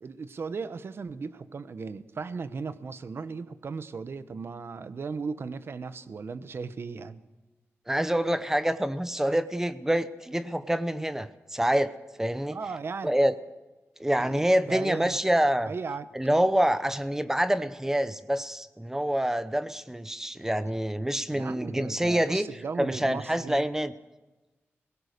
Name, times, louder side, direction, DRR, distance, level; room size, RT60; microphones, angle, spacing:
voice 1, 0.0-7.2 12.5-13.1 14.2-15.4 15.7-16.1 21.3-23.7, right 4 dB, 55° right, 13 dB, 1.0 m, -36 dB
voice 2, 7.9-11.9 12.2-12.6 13.0-13.3 14.0-15.7 16.1-22.5 22.8-23.9, right 1 dB, 10° right, 13 dB, 0.8 m, -26 dB
21.5 x 18.0 x 6.6 m, 1.1 s
wide cardioid pair, 120°, 5 cm